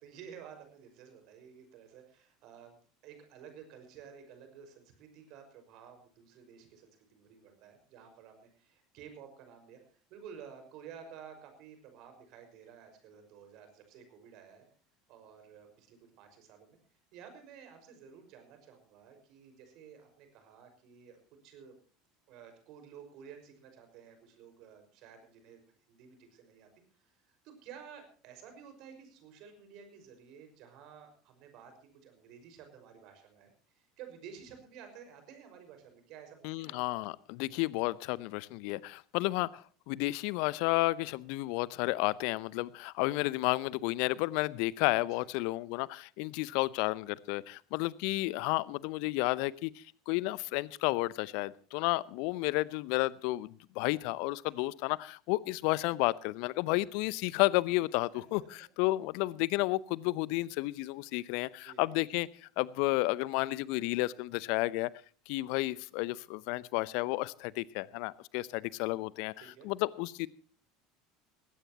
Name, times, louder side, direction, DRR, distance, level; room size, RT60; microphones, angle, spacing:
voice 1, 0.0-2.8 3.0-14.7 15.1-16.8 17.1-21.7 22.3-25.6 25.9-26.7 27.0-27.2 27.4-31.7 32.0-36.8 39.3-39.4 45.1-45.3 54.5-54.7 58.1-58.5 61.6-62.0 69.4-69.7, right 7 dB, 55° right, 6 dB, 5.7 m, -53 dB
voice 2, 36.4-64.9 65.3-69.3 69.6-70.3, left 21 dB, 60° left, 21 dB, 0.7 m, -32 dB
20.0 x 17.0 x 3.0 m, 0.42 s
figure-of-eight pair, 70°, 0 cm